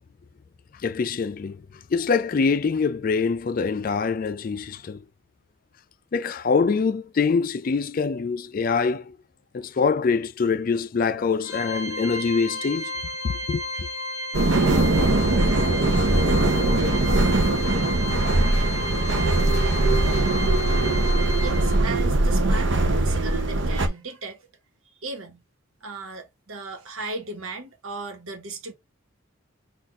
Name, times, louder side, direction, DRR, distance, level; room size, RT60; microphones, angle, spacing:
voice 1, 0.8-1.6 1.9-5.0 6.1-9.2 9.5-12.9 13.2-13.9, left 5 dB, 40° left, 0.3 m, -24 dB
Organ, 11.4-22.1, left 1 dB, 10° right, 2.1 m, -33 dB
sound 1, 14.3-23.9, right 2 dB, 60° right, 0.7 m, -21 dB
voice 2, 21.4-24.4 25.0-25.4 25.8-28.7, right 3 dB, 80° right, 1.3 m, -36 dB
4.1 x 2.5 x 4.6 m
head